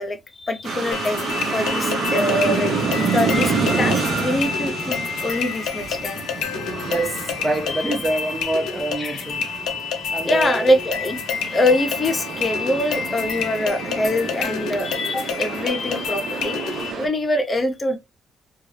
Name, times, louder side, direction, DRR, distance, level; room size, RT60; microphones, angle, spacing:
voice 1, 0.0-6.2 9.0-9.2 10.2-11.2 11.4-16.6 17.0-18.0, left 1 dB, 35° left, 0.6 m, -24 dB
sound 1, 0.6-17.1, right 4 dB, 65° right, 0.9 m, -28 dB
sound 2, 0.9-16.9, left 7 dB, 90° left, 0.6 m, -29 dB
voice 2, 6.8-9.5 10.1-10.7, right 2 dB, 20° right, 0.6 m, -26 dB
2.6 x 2.3 x 3.2 m
cardioid pair, 90°, 0 cm